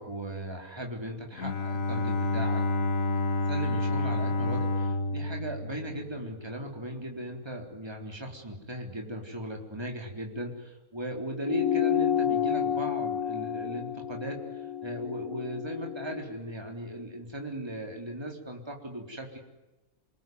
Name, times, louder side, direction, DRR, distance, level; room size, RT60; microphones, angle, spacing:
voice 1, 0.0-3.2 3.5-19.4, right 1 dB, 15° right, 1 dB, 3.9 m, -38 dB
Bowed string instrument, 1.4-6.6, left 2 dB, 65° left, 1.9 m, -29 dB
sound 1, 11.4-16.2, left 9 dB, 80° left, 1.6 m, -30 dB
30.0 x 19.5 x 9.4 m, 1.1 s
omnidirectional pair, 1.5 m